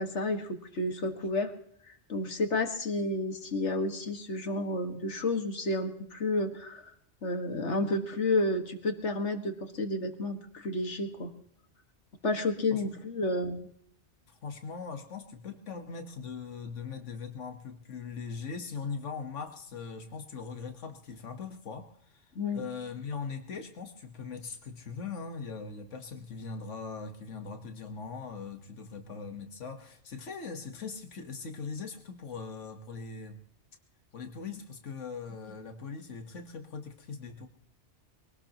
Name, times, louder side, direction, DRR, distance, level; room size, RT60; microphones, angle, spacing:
voice 1, 0.0-1.5 1.9-6.9 7.2-11.3 12.2-13.7 22.4-22.6, left 2 dB, 70° left, 6 dB, 2.0 m, -31 dB
voice 2, 14.3-33.4 34.1-37.5, left 5 dB, 90° left, 5 dB, 1.7 m, -40 dB
23.5 x 18.5 x 3.0 m, 0.67 s
omnidirectional pair, 1.2 m